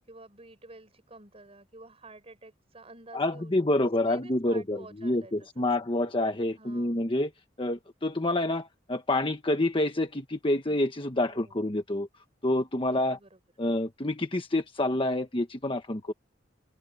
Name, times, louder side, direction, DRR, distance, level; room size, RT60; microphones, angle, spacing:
voice 1, 0.1-5.3 6.6-7.0 11.2-11.6 12.9-13.4 16.0-16.1, right 2 dB, 35° right, 5.2 m, -51 dB
voice 2, 3.1-7.3 7.6-12.1 12.4-13.2 13.6-16.1, left 1 dB, 30° left, 1.3 m, -28 dB
open air
head